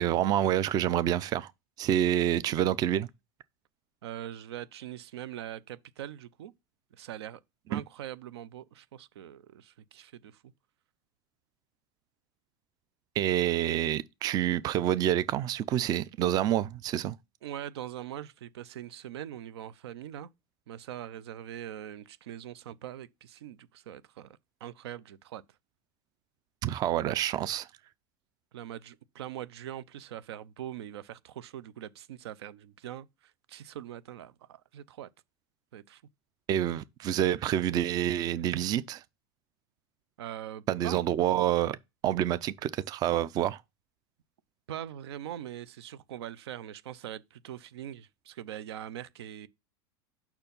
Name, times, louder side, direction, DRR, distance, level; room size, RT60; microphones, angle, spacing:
voice 1, 0.0-1.5 1.8-3.1 7.7-7.8 13.2-17.2 26.6-27.7 36.5-39.0 40.7-41.8 42.0-43.6, right 11 dB, 30° right, 0.4 m, -27 dB
voice 2, 4.0-6.5 6.9-7.4 7.7-10.4 17.4-20.3 20.7-25.4 28.5-35.1 35.7-36.0 40.2-41.0 44.7-49.5, right 11 dB, 85° right, 0.6 m, -42 dB
5.7 x 4.5 x 5.3 m
supercardioid pair, 135°, 13 cm